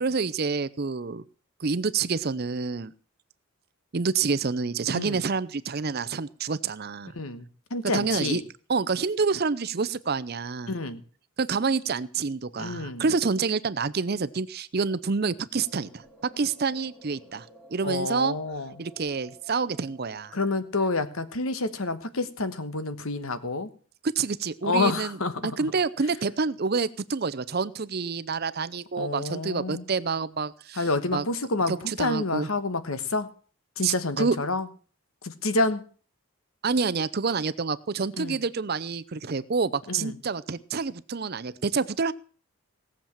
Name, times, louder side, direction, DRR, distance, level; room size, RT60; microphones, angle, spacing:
voice 1, 0.0-1.2 1.6-2.9 3.9-7.1 7.9-8.4 8.7-10.7 11.4-16.0 16.4-17.5 17.7-18.3 18.8-20.4 24.0-25.2 25.4-30.8 31.1-31.2 31.7-32.5 33.8-34.4 36.6-42.1, right 4 dB, 45° right, 16 dB, 0.6 m, -28 dB
voice 2, 7.1-8.4 10.7-11.0 12.6-13.0 17.8-18.7 20.3-23.7 24.6-25.7 29.0-29.8 30.7-33.3 33.8-34.7 35.2-35.8 38.2-38.4 39.9-40.2, left 3 dB, 70° left, 12 dB, 1.3 m, -28 dB
sound 1, 15.6-21.4, right 1 dB, 10° left, 2.7 m, -54 dB
17.5 x 7.4 x 7.2 m, 0.42 s
head